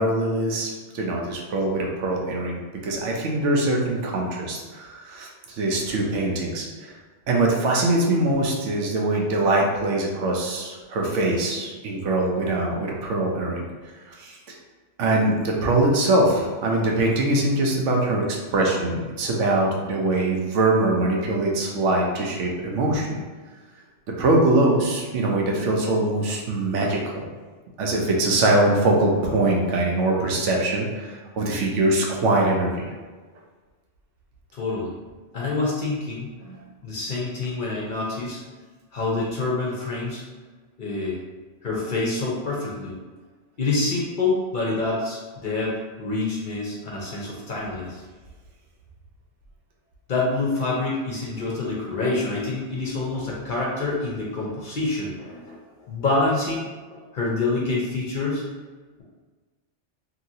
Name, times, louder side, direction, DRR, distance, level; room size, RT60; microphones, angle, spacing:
voice 1, 0.0-6.9 7.3-13.7 14.1-14.5 15.0-23.2 24.1-27.3 27.8-32.9 36.5-36.6, right 2 dB, 80° right, -1 dB, 0.9 m, -23 dB
voice 2, 34.5-34.9 35.3-36.3 36.8-38.4 38.9-40.2 40.8-41.2 41.6-43.0 43.6-48.0 50.1-56.6 56.9-58.4, left 3 dB, 55° left, -4 dB, 0.6 m, -27 dB
2.8 x 2.8 x 2.6 m, 1.4 s
omnidirectional pair, 1.2 m